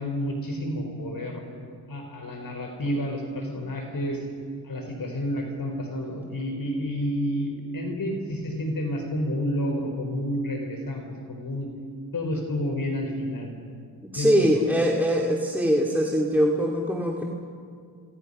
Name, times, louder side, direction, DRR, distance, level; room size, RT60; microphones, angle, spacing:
voice 1, 0.0-1.4 1.9-4.2 4.6-11.7 12.1-13.5 14.2-14.6, equal, 55° left, 3 dB, 4.4 m, -30 dB
voice 2, 14.1-17.2, equal, 5° right, -1 dB, 2.4 m, -22 dB
27.0 x 24.5 x 5.5 m, 2.2 s
cardioid pair, 80°, 41 cm